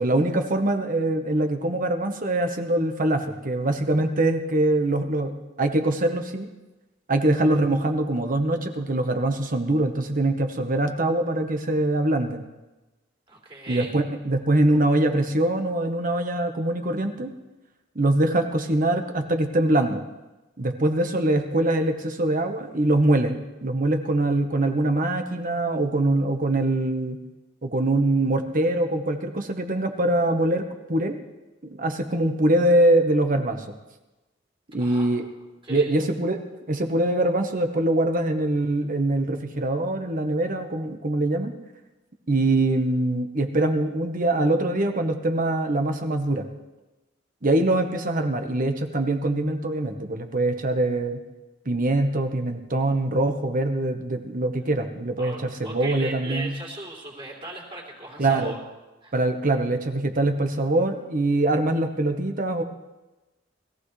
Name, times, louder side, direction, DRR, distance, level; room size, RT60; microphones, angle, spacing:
voice 1, 0.0-5.3 5.6-6.5 7.1-12.4 13.7-17.3 17.9-20.0 20.6-27.2 27.6-31.2 31.6-33.7 34.7-35.3 35.7-36.4 36.7-41.5 42.3-46.5 47.4-51.2 51.6-55.3 55.6-56.5 58.2-58.5 59.1-62.6, right 1 dB, 45° right, 5 dB, 1.2 m, -23 dB
voice 2, 13.3-13.9 34.8-35.1 35.4-35.9 55.2-58.6 59.0-59.1, right 2 dB, 30° right, -2 dB, 3.4 m, -38 dB
20.5 x 15.5 x 3.3 m, 1.1 s
head